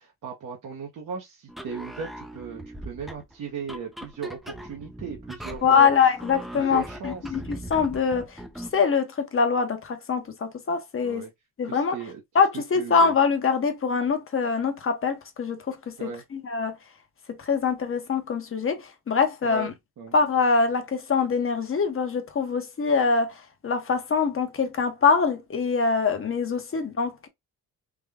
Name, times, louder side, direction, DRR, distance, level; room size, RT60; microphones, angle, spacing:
voice 1, 0.0-5.9 6.6-7.4 11.0-11.3 11.6-12.2 12.7-13.2 16.0-16.2 19.4-20.1, right 5 dB, 55° right, 0.9 m, -37 dB
sound 1, 1.5-8.8, right 1 dB, ahead, 0.5 m, -40 dB
voice 2, 5.6-8.4 8.7-11.2 11.6-12.0 12.3-16.8 17.3-19.7 20.1-23.3 23.6-27.3, left 5 dB, 35° left, 0.9 m, -24 dB
3.6 x 2.2 x 3.4 m
cardioid pair, 105°, 38 cm